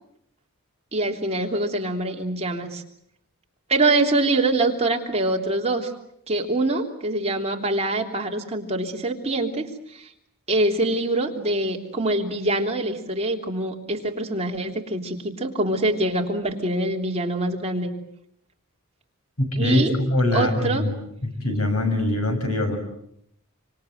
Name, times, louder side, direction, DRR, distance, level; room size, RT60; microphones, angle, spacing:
voice 1, 0.9-2.8 3.7-5.9 6.3-9.7 9.9-10.1 10.5-17.9 19.6-20.0 20.3-20.9, right 2 dB, 30° right, 1 dB, 3.3 m, -24 dB
voice 2, 19.4-20.9 21.2-22.8, left 2 dB, 75° left, 6 dB, 6.9 m, -23 dB
27.5 x 26.0 x 7.9 m, 0.73 s
head